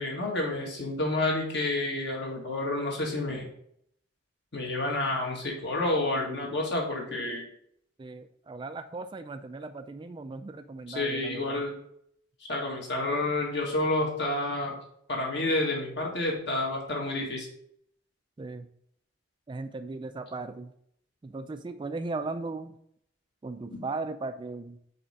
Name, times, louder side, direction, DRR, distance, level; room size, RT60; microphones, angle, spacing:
voice 1, 0.0-3.5 4.5-7.5 10.9-11.8 12.5-14.8 15.1-17.5 23.7-23.8, left 2 dB, 60° left, -1 dB, 1.8 m, -29 dB
voice 2, 8.0-11.6 18.4-18.7 19.5-20.7 21.2-22.8 23.4-24.9, right 3 dB, 25° right, 10 dB, 0.3 m, -37 dB
5.2 x 4.2 x 4.9 m, 0.70 s
head